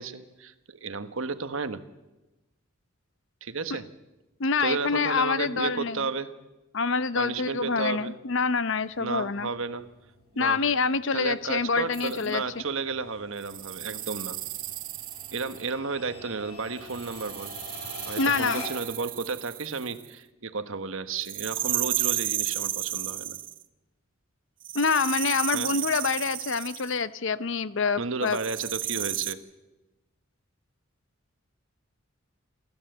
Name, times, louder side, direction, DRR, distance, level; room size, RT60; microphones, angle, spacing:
voice 1, 0.0-1.8 3.4-3.8 4.6-6.4 7.1-8.2 9.0-9.9 10.3-10.6 11.1-14.4 15.3-17.5 18.1-23.4 25.5-25.7 28.0-29.4, right 4 dB, 70° right, 11 dB, 1.2 m, -33 dB
voice 2, 4.4-6.1 6.7-9.5 10.4-12.4 18.2-18.6 24.7-28.4, left 5 dB, 60° left, 16 dB, 0.7 m, -26 dB
sound 1, 8.8-19.0, left 3 dB, 85° left, 6.8 m, -44 dB
sound 2, 11.9-12.3 13.4-15.7 16.9-20.1 21.2-23.6 24.6-27.0 28.3-29.3, right 13 dB, 40° right, 0.7 m, -33 dB
28.5 x 13.0 x 7.9 m, 1.1 s
head